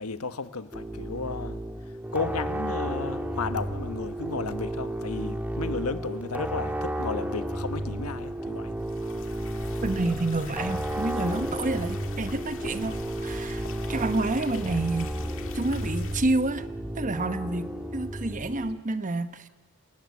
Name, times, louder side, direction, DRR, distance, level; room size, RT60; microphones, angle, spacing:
voice 1, 0.0-8.7, left 4 dB, 80° left, 1.3 m, -34 dB
sound 1, 0.7-18.8, right 1 dB, 10° right, 1.8 m, -33 dB
sound 2, 8.8-16.2, left 3 dB, 60° left, 2.1 m, -42 dB
voice 2, 9.8-15.2 15.5-16.7 17.0-19.5, right 2 dB, 35° right, 1.0 m, -29 dB
27.0 x 19.5 x 9.8 m
head